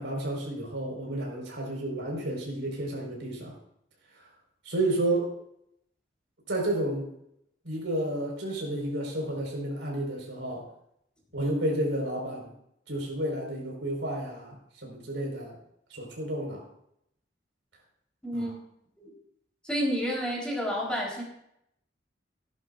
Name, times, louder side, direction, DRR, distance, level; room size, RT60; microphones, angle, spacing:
voice 1, 0.0-3.5 4.6-5.3 6.5-7.1 7.6-10.6 11.3-12.5 12.9-14.6 14.8-15.6 15.9-16.6 18.3-18.5, right 1 dB, 85° right, -1 dB, 4.7 m, -31 dB
voice 2, 18.2-18.5 19.0-19.1 19.6-21.2, equal, 5° left, -4 dB, 3.8 m, -30 dB
17.0 x 11.0 x 2.5 m, 0.77 s
head